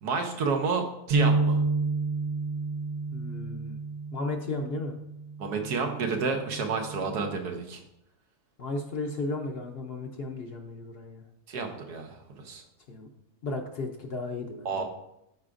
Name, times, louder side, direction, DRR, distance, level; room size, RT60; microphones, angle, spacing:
voice 1, 0.0-1.6 5.4-7.8 11.5-12.6 14.6-14.8, right 4 dB, 90° right, 4 dB, 1.5 m, -30 dB
sound 1, 1.1-7.4, right 3 dB, 70° right, 1.3 m, -30 dB
voice 2, 3.1-3.8 4.1-4.9 8.6-11.2 12.9-13.1 13.4-14.8, left 2 dB, 50° left, 3 dB, 0.8 m, -34 dB
13.5 x 4.7 x 2.5 m, 0.82 s
omnidirectional pair, 1.6 m